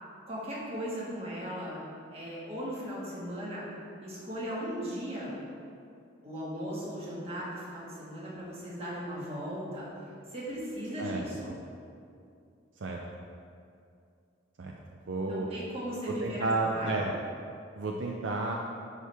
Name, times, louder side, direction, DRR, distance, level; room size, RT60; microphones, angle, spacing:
voice 1, 0.3-1.8 2.1-3.6 4.0-5.3 6.2-9.9 10.3-11.6 15.3-17.2, equal, 30° right, -6 dB, 1.7 m, -37 dB
voice 2, 11.0-11.6 12.8-13.0 14.6-14.8 15.1-15.5 16.1-17.1 17.7-18.5, right 2 dB, 65° right, 0 dB, 0.5 m, -32 dB
11.0 x 4.6 x 3.4 m, 2.5 s
head